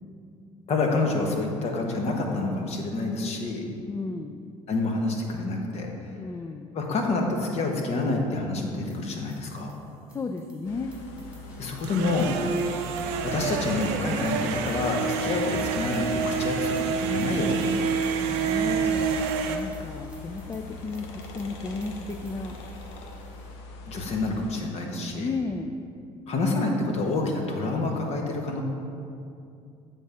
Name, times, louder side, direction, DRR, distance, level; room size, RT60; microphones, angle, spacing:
voice 1, 0.7-3.6 4.7-5.9 6.7-9.7 11.6-12.3 12.8-12.9 13.2-17.6 17.9-18.8 23.8-25.3 26.3-28.6, left 3 dB, 50° left, 2 dB, 1.2 m, -28 dB
voice 2, 3.9-4.4 6.2-6.7 10.1-11.0 18.3-22.6 25.1-25.8, left 3 dB, 20° left, 6 dB, 0.3 m, -34 dB
sound 1, 8.9-23.5, left 1 dB, 10° right, 1.3 m, -48 dB
sound 2, 10.6-24.5, left 3 dB, 90° left, 0.8 m, -41 dB
sound 3, 11.8-19.6, right 6 dB, 85° right, 0.6 m, -28 dB
7.8 x 3.7 x 5.5 m, 2.5 s
supercardioid pair, 85°, 14 cm